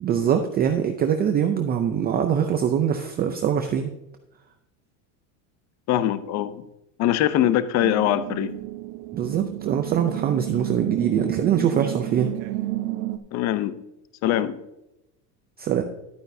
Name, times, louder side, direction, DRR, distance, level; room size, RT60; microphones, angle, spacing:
voice 1, 0.0-3.9 9.1-12.3 15.6-15.8, right 8 dB, 20° right, 0.4 m, -23 dB
voice 2, 5.9-6.7 7.0-8.5 13.3-13.8 14.2-14.6, left 12 dB, 35° left, 0.6 m, -22 dB
sound 1, 7.8-13.2, right 16 dB, 80° right, 1.0 m, -31 dB
11.5 x 9.2 x 2.7 m
supercardioid pair, 135°, 48 cm